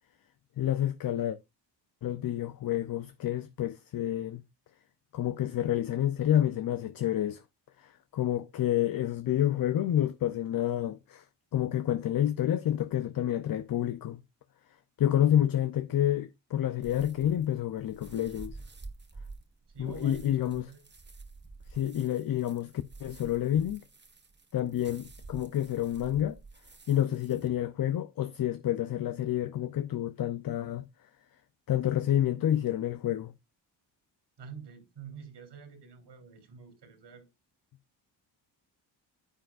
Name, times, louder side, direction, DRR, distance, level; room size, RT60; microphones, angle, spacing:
voice 1, 0.6-1.4 2.0-4.4 5.1-7.4 7.8-11.2 11.5-14.2 15.0-18.6 19.8-20.7 21.7-22.7 23.0-23.8 24.5-26.4 26.9-30.8 31.7-33.3, left 11 dB, 50° left, 0.7 m, -29 dB
Crunching Leaves, 16.8-27.5, right 3 dB, 25° right, 1.5 m, -49 dB
voice 2, 19.7-20.8 34.4-37.3, right 7 dB, 70° right, 3.3 m, -48 dB
10.0 x 7.7 x 2.5 m
cardioid pair, 90°, 43 cm